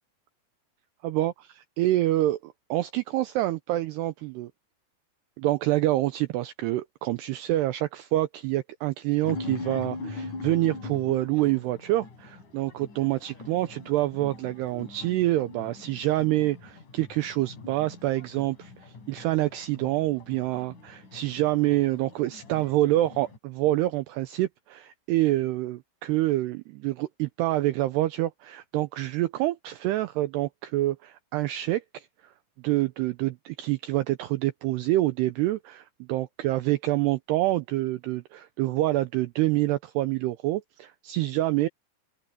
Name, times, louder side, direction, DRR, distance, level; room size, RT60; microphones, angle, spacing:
voice 1, 1.0-4.5 5.4-32.1 32.6-41.7, right 16 dB, 90° right, 2.3 m, -27 dB
sound 1, 9.2-23.4, left 3 dB, 40° left, 5.8 m, -42 dB
omnidirectional pair, 5.6 m